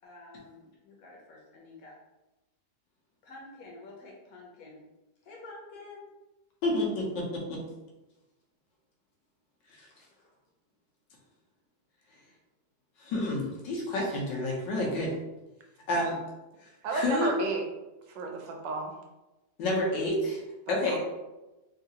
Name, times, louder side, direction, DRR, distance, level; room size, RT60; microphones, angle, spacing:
voice 1, 0.0-2.0 3.2-4.8 5.2-6.1, left 2 dB, 60° left, -2 dB, 1.2 m, -49 dB
voice 2, 6.6-7.6 13.0-15.2 15.9-16.2 16.9-17.3 19.6-20.4 20.7-21.0, left 1 dB, 80° left, -2 dB, 1.5 m, -29 dB
voice 3, 16.8-17.6 18.1-19.0 20.8-21.0, right 3 dB, 85° right, 2 dB, 1.3 m, -32 dB
3.7 x 2.4 x 2.8 m, 1.0 s
omnidirectional pair, 1.9 m